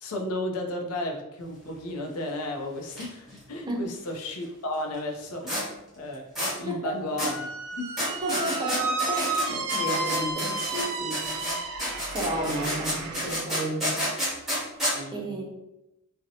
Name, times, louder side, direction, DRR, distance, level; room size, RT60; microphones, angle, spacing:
voice 1, 0.0-5.6 6.0-6.3 6.6-7.5 7.8-8.1 14.9-15.6, left 1 dB, 85° left, 2 dB, 0.5 m, -34 dB
sound 1, 2.8-3.0 3.3-3.4 5.5-5.6 6.4-6.5 7.2-7.3 8.0-10.9 11.1-14.9, equal, ahead, 1.0 m, -29 dB
voice 2, 6.7-7.0 8.2-11.3 12.1-14.0 15.1-15.6, right 1 dB, 20° right, -1 dB, 0.5 m, -32 dB
Squeak, 7.2-13.3, right 3 dB, 80° right, 0.4 m, -32 dB
2.6 x 2.1 x 2.6 m, 0.90 s
head